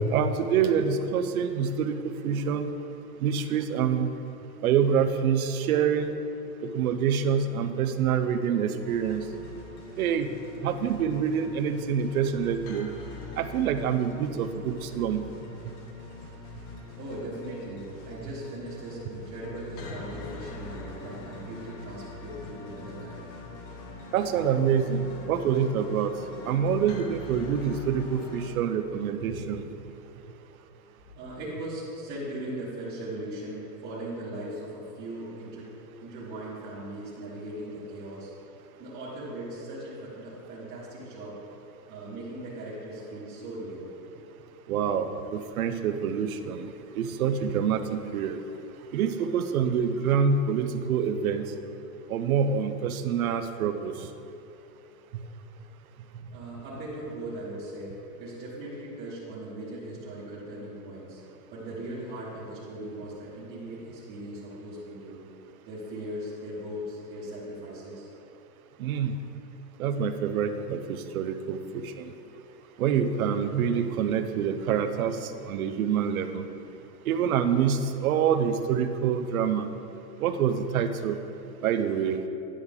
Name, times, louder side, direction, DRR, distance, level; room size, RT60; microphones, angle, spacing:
voice 1, 0.1-2.0 2.2-2.6 3.2-4.1 4.6-6.1 6.7-9.2 10.0-10.3 10.6-12.9 13.4-15.2 24.1-26.1 26.5-29.6 44.7-46.6 47.0-48.4 48.9-51.5 52.1-53.9 68.8-69.1 69.8-70.8 71.1-71.6 72.8-75.2 75.5-76.4 77.1-79.7 80.2-81.2 81.6-82.2, right 7 dB, 60° right, 9 dB, 0.6 m, -26 dB
sound 1, 8.8-28.6, left 3 dB, 50° left, 1.1 m, -43 dB
voice 2, 17.0-23.3 29.2-30.1 31.1-35.6 36.0-38.3 38.8-41.4 41.9-43.9 56.3-57.9 58.2-61.2 61.5-65.2 65.6-68.1, right 1 dB, 20° right, -10 dB, 1.2 m, -39 dB
10.0 x 6.3 x 3.6 m, 2.7 s
supercardioid pair, 170°, 49 cm